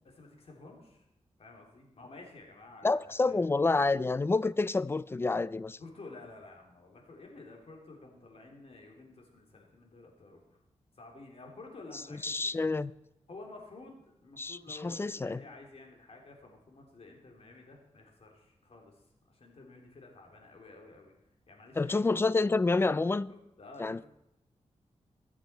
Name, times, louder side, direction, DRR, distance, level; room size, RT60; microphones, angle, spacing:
voice 1, 0.0-1.0 1.4-3.4 5.8-10.6 10.9-12.7 13.3-21.1 21.5-21.9 23.3-24.1, left 3 dB, 55° left, 3.2 m, -51 dB
voice 2, 2.8-5.8 12.2-12.9 14.4-15.4 21.8-23.3 23.8-24.0, left 3 dB, 20° left, 0.4 m, -28 dB
21.5 x 7.3 x 4.5 m
wide cardioid pair, 105°, 12 cm